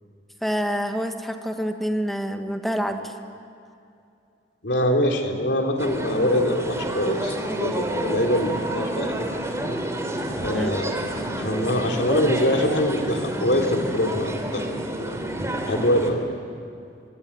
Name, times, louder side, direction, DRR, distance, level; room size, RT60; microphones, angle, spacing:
voice 1, 0.4-3.1 10.5-10.7, equal, ahead, 5 dB, 1.8 m, -27 dB
voice 2, 4.6-7.3 7.6-9.3 10.4-14.6 15.0-15.2 15.7-16.3, left 1 dB, 75° left, 2 dB, 3.3 m, -24 dB
sound 1, 5.8-16.1, right 1 dB, 15° right, 3.2 m, -29 dB
Drum, 9.6-11.6, equal, 90° right, 6.2 m, -44 dB
25.5 x 22.5 x 9.7 m, 2.5 s
head